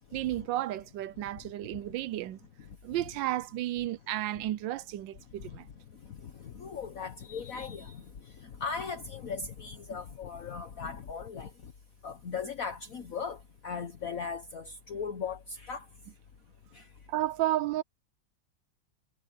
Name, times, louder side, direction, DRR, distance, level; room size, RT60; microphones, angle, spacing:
voice 1, 0.1-2.4 2.8-5.7 17.1-17.8, right 14 dB, 90° right, 1.4 m, -32 dB
voice 2, 6.1-8.0 8.4-11.5 12.0-15.8 16.7-16.9, left 5 dB, 50° left, 1.5 m, -38 dB
omnidirectional pair, 1.9 m